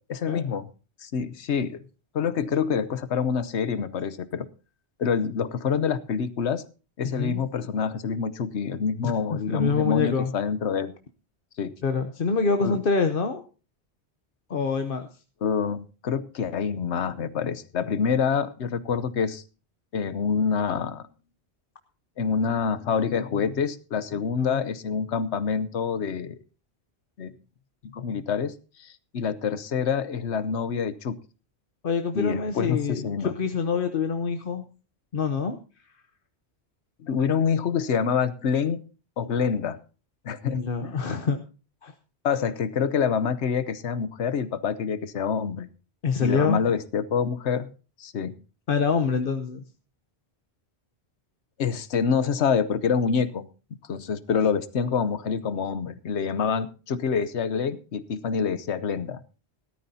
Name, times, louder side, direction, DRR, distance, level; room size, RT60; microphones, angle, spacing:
voice 1, 0.1-0.7 1.0-1.8 2.1-4.5 5.0-6.6 7.0-10.9 11.6-11.7 12.6-12.8 15.4-19.4 19.9-21.0 22.2-26.3 27.2-27.3 27.8-28.5 28.8-31.1 32.1-33.3 37.0-38.8 39.2-39.8 40.2-40.9 42.2-45.7 46.2-47.7 48.0-48.4 51.6-53.4 53.9-59.2, left 6 dB, 85° left, 15 dB, 1.2 m, -26 dB
voice 2, 7.0-7.4 9.0-10.3 11.8-13.4 14.5-15.1 24.4-24.6 31.8-34.6 35.1-35.6 40.5-41.4 41.8-41.9 46.0-46.6 48.7-49.6, left 5 dB, 55° left, 7 dB, 1.0 m, -26 dB
18.0 x 13.0 x 2.8 m, 0.33 s
omnidirectional pair, 1.1 m